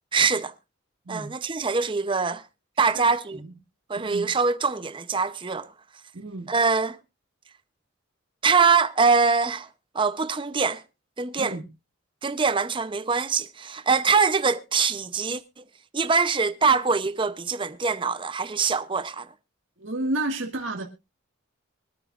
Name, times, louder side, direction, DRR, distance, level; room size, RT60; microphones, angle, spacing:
voice 1, 0.1-0.5 1.1-2.4 2.8-3.4 3.9-5.7 6.5-7.0 8.4-9.7 9.9-10.8 11.2-11.6 12.2-15.6 15.9-19.3, right 5 dB, 25° right, 0.6 m, -23 dB
voice 2, 2.9-3.5 3.9-4.3 6.1-6.5 11.4-11.6 19.8-20.8, right 2 dB, 60° right, 1.8 m, -31 dB
24.5 x 9.3 x 2.4 m
head